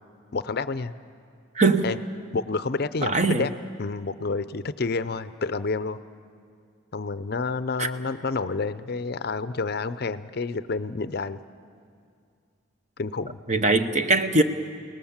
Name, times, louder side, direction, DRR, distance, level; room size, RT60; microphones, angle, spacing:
voice 1, 0.3-0.9 1.8-2.0 2.3-3.5 3.8-6.0 6.9-11.4 13.0-13.4, left 4 dB, 50° left, 14 dB, 0.5 m, -29 dB
voice 2, 1.5-1.9 3.0-3.4 7.8-7.9 13.5-14.4, right 3 dB, 35° right, 8 dB, 1.0 m, -21 dB
29.0 x 18.5 x 7.3 m, 2.3 s
head